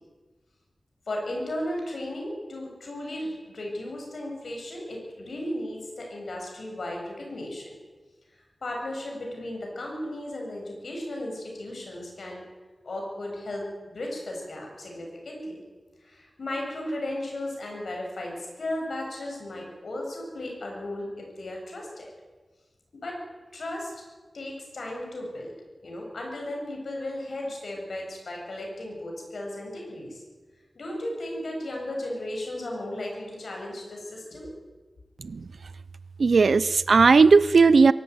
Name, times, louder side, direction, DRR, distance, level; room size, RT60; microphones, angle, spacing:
voice 1, 1.1-7.8 8.3-12.4 12.8-15.6 16.0-22.1 22.9-23.2 23.5-24.0 24.3-25.5 25.8-30.2 30.7-34.5, left 1 dB, 75° left, 0 dB, 7.7 m, -35 dB
voice 2, 36.2-37.9, right 4 dB, 75° right, 17 dB, 0.6 m, -17 dB
23.5 x 14.0 x 9.5 m, 1.3 s
wide cardioid pair, 105°, 0 cm